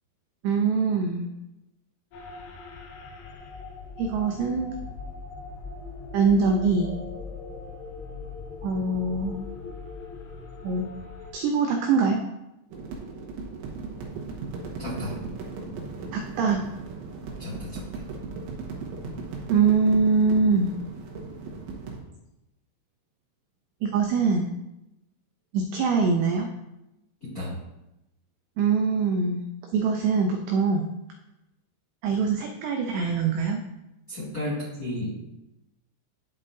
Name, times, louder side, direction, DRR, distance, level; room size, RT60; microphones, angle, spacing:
voice 1, 0.4-1.3 4.0-4.8 6.1-6.9 8.6-9.4 10.6-10.8 11.3-12.2 16.1-16.6 19.5-20.7 23.8-24.5 25.5-26.5 28.6-29.4 29.7-30.9 32.0-33.6, right 5 dB, 90° right, 3 dB, 2.4 m, -23 dB
sound 1, 2.1-11.3, left 4 dB, 70° left, 2.8 m, -40 dB
sound 2, 12.7-22.0, right 4 dB, 70° right, 3.6 m, -37 dB
voice 2, 14.8-15.2 17.4-18.0 27.2-27.6 34.1-35.1, left 1 dB, 35° left, -7 dB, 1.4 m, -33 dB
12.5 x 5.3 x 2.7 m, 0.92 s
omnidirectional pair, 5.7 m